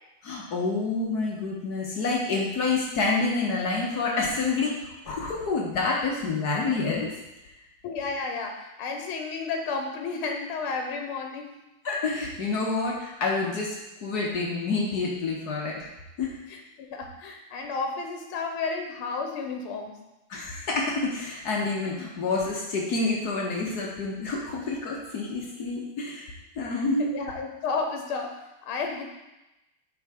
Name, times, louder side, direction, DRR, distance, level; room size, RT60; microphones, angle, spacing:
voice 1, 0.2-7.1 11.8-13.8 14.0-15.9 16.2-16.4 20.3-27.1, left 3 dB, 55° left, -2 dB, 1.4 m, -28 dB
voice 2, 7.8-11.5 16.5-20.0 27.0-29.0, left 4 dB, 85° left, 4 dB, 1.7 m, -32 dB
7.8 x 3.8 x 4.8 m, 0.97 s
omnidirectional pair, 2.3 m